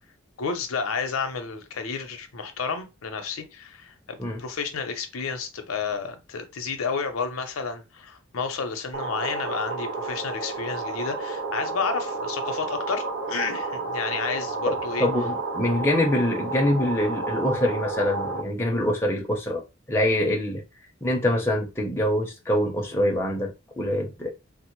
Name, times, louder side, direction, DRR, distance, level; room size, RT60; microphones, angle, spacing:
voice 1, 0.4-15.1, left 5 dB, 85° left, 0.6 m, -31 dB
sound 1, 8.9-18.4, right 3 dB, 70° right, 0.6 m, -31 dB
voice 2, 15.0-19.6 19.9-20.6 21.0-24.3, left 1 dB, 10° left, 0.6 m, -24 dB
3.6 x 2.0 x 2.9 m
head